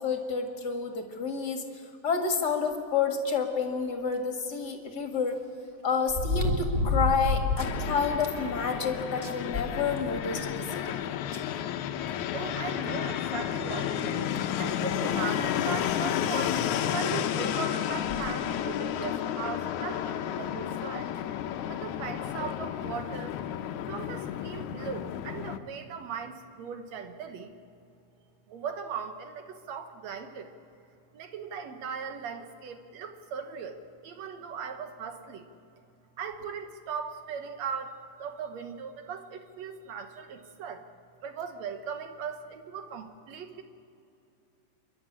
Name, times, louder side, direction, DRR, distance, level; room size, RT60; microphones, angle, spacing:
voice 1, 0.0-1.6 2.0-5.4 5.8-11.0, left 5 dB, 35° left, 4 dB, 1.9 m, -29 dB
sound 1, 4.1-4.2 6.1-7.8 8.2-8.3 8.8-8.9 9.2-10.3 11.3-11.4 12.9-13.0 13.5-13.6 14.3-14.6 15.9-16.0 16.2-16.3 18.0-18.3 19.0-19.1, left 2 dB, 20° right, 1.5 m, -29 dB
Fixed-wing aircraft airplane, 7.6-25.6, left 10 dB, 75° left, 2.0 m, -32 dB
voice 2, 12.3-21.1 21.6-23.4 23.9-27.5 28.5-30.5 31.1-35.5 36.2-40.8 41.2-43.6, right 6 dB, 60° right, 7 dB, 2.2 m, -38 dB
28.5 x 12.0 x 8.7 m, 2.7 s
omnidirectional pair, 3.9 m